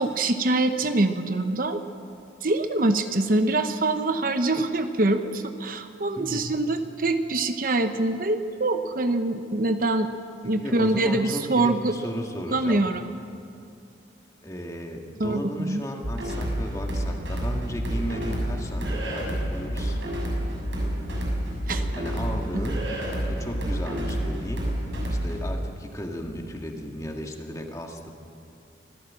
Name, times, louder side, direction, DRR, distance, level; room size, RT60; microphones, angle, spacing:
voice 1, 0.0-1.8 2.4-10.1 10.4-11.9 12.5-13.1 15.2-15.8 21.7-21.8, right 2 dB, 50° right, 8 dB, 0.9 m, -24 dB
voice 2, 6.2-6.5 10.4-12.9 14.4-20.0 22.0-24.7 25.1-28.1, equal, 20° left, 2 dB, 1.9 m, -35 dB
sound 1, 16.0-25.4, equal, 90° right, 6.4 m, -29 dB
25.5 x 16.0 x 7.5 m, 2.5 s
head